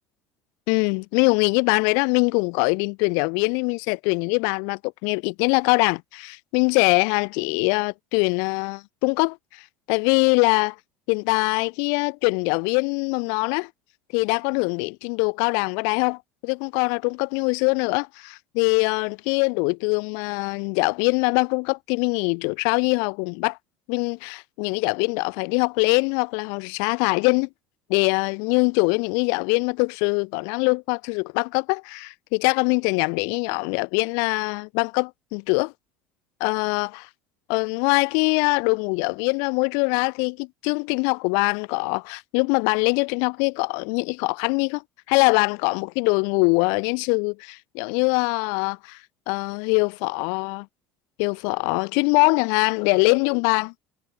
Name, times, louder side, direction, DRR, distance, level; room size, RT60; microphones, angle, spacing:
voice 1, 0.7-9.6 9.9-10.8 11.1-13.7 14.1-23.6 23.9-27.5 27.9-35.7 36.4-37.1 37.5-44.8 45.1-49.0 49.3-50.7 51.2-53.7, left 39 dB, 70° left, 1.7 m, -23 dB
hypercardioid pair, 80°, 6 cm